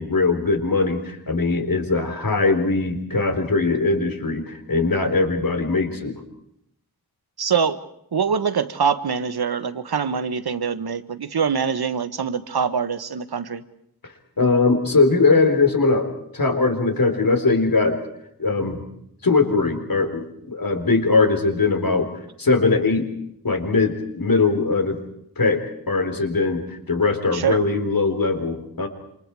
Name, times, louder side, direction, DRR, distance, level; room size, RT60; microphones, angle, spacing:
voice 1, 0.0-6.1 14.4-18.0 18.4-18.8 19.2-23.1 23.4-25.0 25.4-25.6 25.9-28.9, left 3 dB, 65° left, 6 dB, 4.4 m, -20 dB
voice 2, 7.4-7.8 8.1-13.6 27.3-27.6, right 6 dB, 90° right, 12 dB, 1.4 m, -24 dB
28.5 x 27.0 x 4.8 m, 0.74 s
wide cardioid pair, 90°, 37 cm